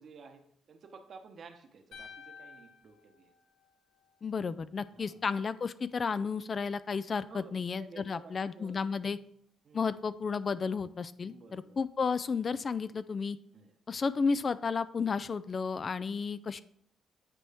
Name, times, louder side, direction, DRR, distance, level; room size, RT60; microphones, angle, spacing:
voice 1, 0.0-3.3 4.9-5.2 7.3-9.2 9.6-9.9 11.2-11.8 13.5-13.7 16.1-16.2, right 4 dB, 55° right, 6 dB, 0.9 m, -53 dB
sound 1, 1.9-4.2, left 6 dB, 70° left, 1.5 m, -52 dB
voice 2, 4.2-9.2 9.7-13.4 13.9-16.6, left 5 dB, 40° left, 15 dB, 0.3 m, -32 dB
8.8 x 4.4 x 3.4 m, 0.67 s
cardioid pair, 90°, 0 cm